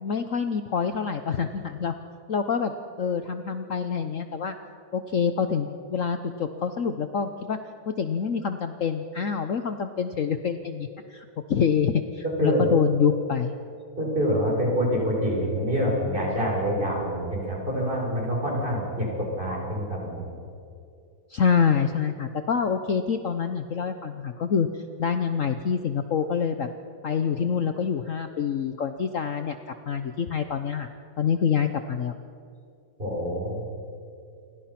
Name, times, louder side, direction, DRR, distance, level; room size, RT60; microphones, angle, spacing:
voice 1, 0.0-1.9 2.3-2.7 3.0-4.5 4.9-7.6 7.9-13.5 21.3-24.7 25.0-26.7 27.0-29.6 29.9-30.9 31.2-32.1, left 6 dB, 55° left, 8 dB, 1.2 m, -26 dB
voice 2, 12.2-12.7 14.0-20.3 33.0-33.6, equal, 30° right, -2 dB, 7.2 m, -26 dB
28.5 x 24.5 x 6.0 m, 2.5 s
omnidirectional pair, 1.8 m